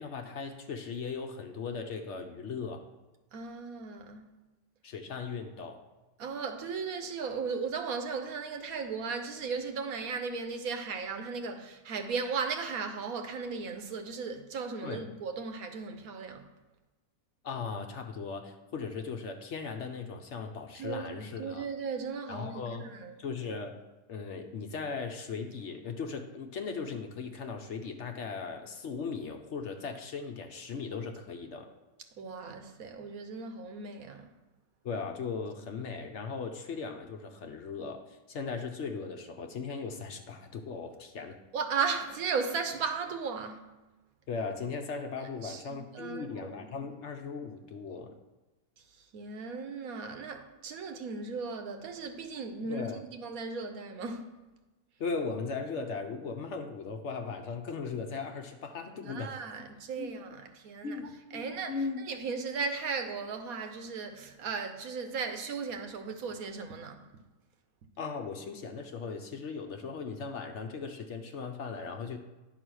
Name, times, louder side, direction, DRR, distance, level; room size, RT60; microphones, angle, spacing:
voice 1, 0.0-2.8 4.8-5.8 14.8-15.0 17.4-21.7 22.3-22.9 23.2-23.8 24.1-31.7 34.8-41.4 44.3-48.2 52.7-53.0 55.0-59.3 60.0-60.2 60.8-62.0 68.0-72.2, left 5 dB, 60° left, 0.9 m, -38 dB
voice 2, 3.3-4.3 6.2-16.4 20.8-23.2 32.2-34.3 41.5-43.7 45.4-46.5 49.1-54.3 58.9-61.0 61.3-61.8 62.1-67.0, right 5 dB, 75° right, 1.3 m, -36 dB
10.0 x 4.1 x 6.2 m
omnidirectional pair, 1.5 m